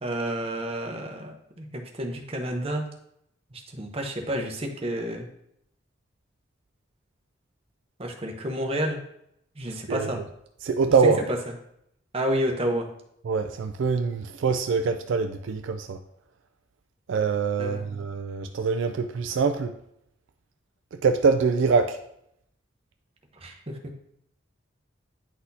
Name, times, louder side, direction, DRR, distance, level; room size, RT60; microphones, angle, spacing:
voice 1, 0.0-2.9 3.5-5.3 8.0-9.0 9.6-10.2 11.3-11.4 12.1-12.9 17.6-17.9 23.4-23.8, right 1 dB, 30° right, 3 dB, 0.8 m, -30 dB
voice 2, 10.6-11.2 13.3-16.0 17.1-19.7 21.0-22.0, right 5 dB, 65° right, 7 dB, 0.3 m, -24 dB
9.4 x 4.1 x 2.7 m, 0.75 s
head